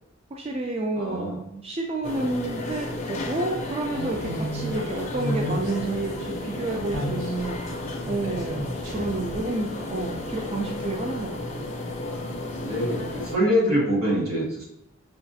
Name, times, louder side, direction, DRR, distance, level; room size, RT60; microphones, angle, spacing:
voice 1, 0.3-7.6 8.0-8.7 8.9-11.7, right 2 dB, 30° right, 1 dB, 0.4 m, -30 dB
voice 2, 0.9-1.4 12.6-14.6, equal, 85° right, -4 dB, 1.4 m, -24 dB
sound 1, 2.0-13.4, left 2 dB, 35° left, 0.5 m, -33 dB
sound 2, 3.9-10.6, right 1 dB, 65° right, 0.8 m, -34 dB
5.6 x 2.4 x 2.6 m, 0.81 s
head